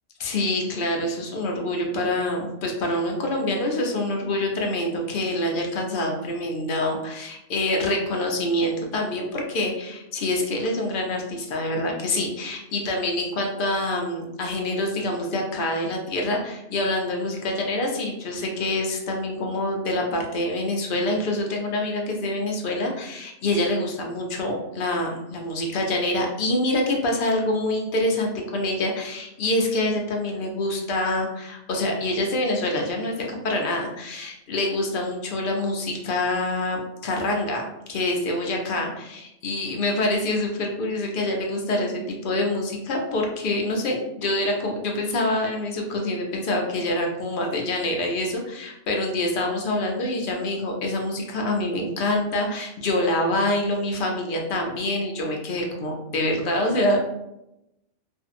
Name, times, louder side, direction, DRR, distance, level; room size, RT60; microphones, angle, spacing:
voice 1, 0.2-33.2 33.4-57.0, left 1 dB, 60° left, 1 dB, 0.6 m, -26 dB
2.6 x 2.6 x 2.5 m, 0.88 s
omnidirectional pair, 1.3 m